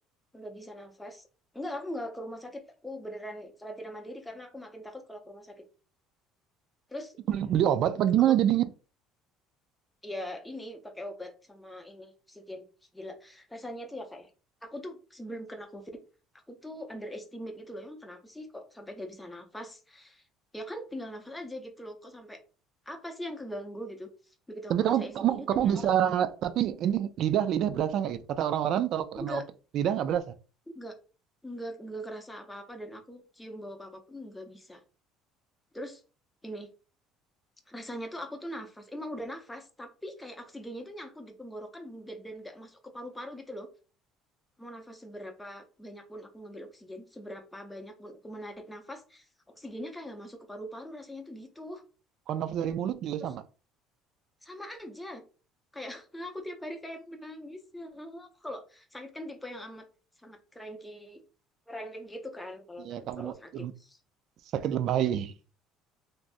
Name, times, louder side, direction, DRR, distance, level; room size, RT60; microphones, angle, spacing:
voice 1, 0.3-1.3 1.5-5.7 6.9-7.2 8.3-8.4 10.0-12.6 12.9-14.3 14.6-15.8 16.5-20.2 20.5-22.4 22.9-24.1 24.5-25.9 29.2-29.4 30.7-30.9 31.4-34.8 35.7-36.0 36.4-36.7 37.7-43.7 44.6-51.8 53.2-53.3 54.4-55.2 55.7-59.9 60.2-61.2 61.7-64.0, equal, 5° left, 0.5 m, -41 dB
voice 2, 7.3-8.7 24.7-29.4 29.7-30.2 52.3-53.4 62.8-63.7 64.5-65.3, right 10 dB, 50° right, 0.3 m, -27 dB
3.3 x 2.6 x 2.5 m
cardioid pair, 160°, 0 cm